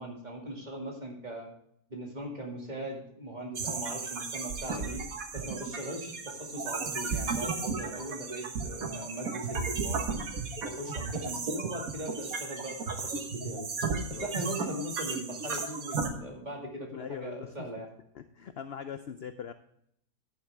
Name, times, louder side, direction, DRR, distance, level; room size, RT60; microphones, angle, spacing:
voice 1, 0.0-1.5 1.9-5.0 5.3-10.3 10.6-13.7 14.1-17.9, right 1 dB, 25° right, 0 dB, 2.3 m, -40 dB
sound 1, 3.6-16.1, right 4 dB, 60° right, 1.7 m, -34 dB
voice 2, 4.7-5.0 13.9-14.2 16.8-17.5 18.1-19.5, left 7 dB, 70° left, 10 dB, 0.6 m, -42 dB
10.5 x 9.7 x 3.4 m, 0.72 s
omnidirectional pair, 1.8 m